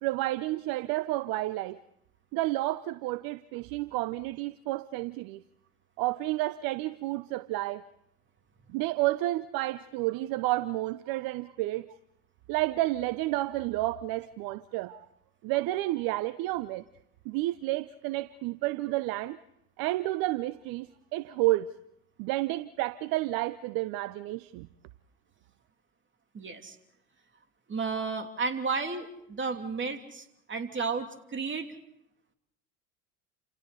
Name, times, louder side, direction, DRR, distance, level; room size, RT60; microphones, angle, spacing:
voice 1, 0.0-1.8 2.3-5.4 6.0-7.8 8.7-11.9 12.5-15.1 15.4-16.8 17.2-19.4 19.8-21.7 22.2-24.7, right 17 dB, 55° right, 15 dB, 0.9 m, -30 dB
voice 2, 26.3-26.8 27.7-31.7, right 4 dB, 25° right, 6 dB, 3.1 m, -33 dB
29.5 x 28.0 x 4.2 m, 0.79 s
hypercardioid pair, 75°, 42 cm